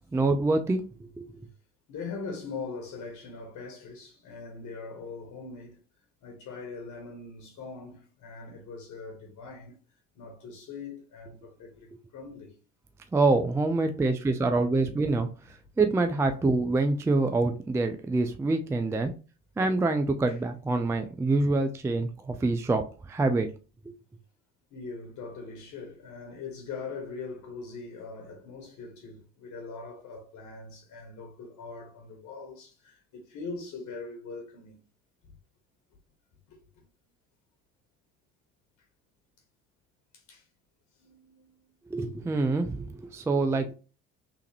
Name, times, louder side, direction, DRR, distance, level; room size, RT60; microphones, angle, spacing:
voice 1, 0.1-0.8 1.2-1.3 13.1-15.3 15.8-19.1 19.6-23.5 23.9-24.0 41.9-43.7, right 3 dB, 10° right, 0.3 m, -26 dB
voice 2, 1.9-5.8 6.2-9.8 10.1-12.6 20.3-20.4 24.7-34.8 36.5-36.6 40.1-40.5 41.0-41.7, left 4 dB, 55° left, 1.3 m, -41 dB
3.4 x 3.0 x 3.2 m
hypercardioid pair, 60°, 34 cm